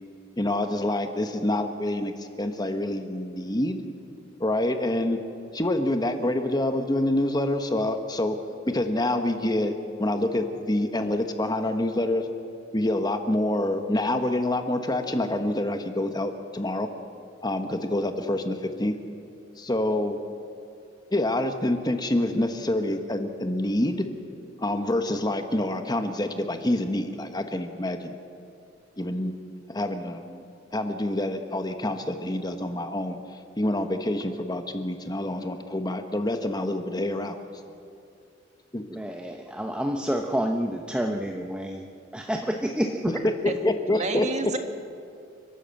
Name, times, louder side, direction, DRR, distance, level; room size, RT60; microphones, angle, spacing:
voice 1, 0.4-3.8 4.4-5.2 5.5-8.4 8.7-12.3 12.7-16.9 17.4-18.9 19.6-20.2 21.1-24.1 24.6-28.2 29.0-29.4 29.7-30.4 30.7-37.4 37.7-37.8 38.7-38.8 43.1-44.3, left 1 dB, 20° left, 7 dB, 1.2 m, -27 dB
voice 2, 38.9-41.8 42.1-43.0, equal, 5° right, 3 dB, 0.9 m, -28 dB
voice 3, 43.1-43.5 43.9-44.6, right 3 dB, 40° right, 6 dB, 1.8 m, -30 dB
29.5 x 12.5 x 7.7 m, 2.5 s
head